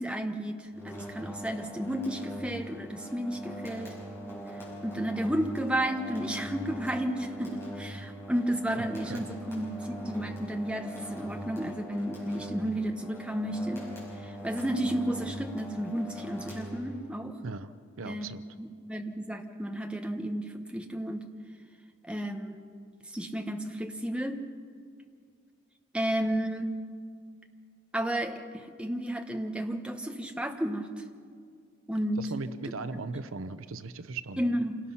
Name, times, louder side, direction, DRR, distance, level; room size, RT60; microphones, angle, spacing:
voice 1, 0.0-3.9 4.8-13.8 14.2-17.4 18.0-18.2 18.6-21.3 22.0-22.6 23.1-24.4 25.9-26.7 27.9-31.0 31.9-32.2 34.4-34.8, right 1 dB, 5° right, 4 dB, 1.1 m, -32 dB
sound 1, 0.7-17.2, equal, 10° left, 5.8 m, -41 dB
voice 2, 8.8-9.2 17.4-18.4 32.2-34.6, right 3 dB, 80° right, 12 dB, 0.7 m, -39 dB
27.0 x 18.5 x 5.7 m, 2.1 s
head